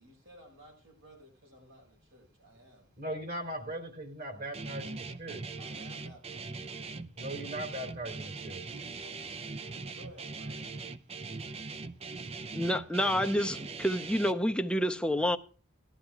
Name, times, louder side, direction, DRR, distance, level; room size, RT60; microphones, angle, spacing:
voice 1, 0.0-2.9 5.6-7.1 9.0-9.2 9.5-10.8, equal, 75° right, 6.9 m, -56 dB
voice 2, 3.0-5.5 7.2-8.7, right 1 dB, 45° right, 3.5 m, -39 dB
Guitar, 4.5-14.3, right 4 dB, 30° right, 0.6 m, -41 dB
voice 3, 12.5-15.4, equal, 5° left, 0.7 m, -28 dB
19.5 x 12.5 x 2.3 m
head